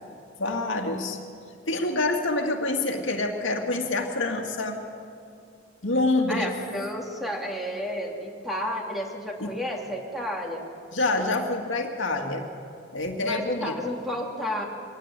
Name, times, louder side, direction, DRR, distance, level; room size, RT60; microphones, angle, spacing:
voice 1, 0.4-1.2 1.7-4.8 5.8-6.5 9.4-9.6 10.9-12.5 12.9-13.8, left 2 dB, 75° left, 2 dB, 2.2 m, -26 dB
voice 2, 6.3-10.7 13.2-14.7, equal, ahead, 0 dB, 2.7 m, -31 dB
23.5 x 18.5 x 8.3 m, 2.5 s
head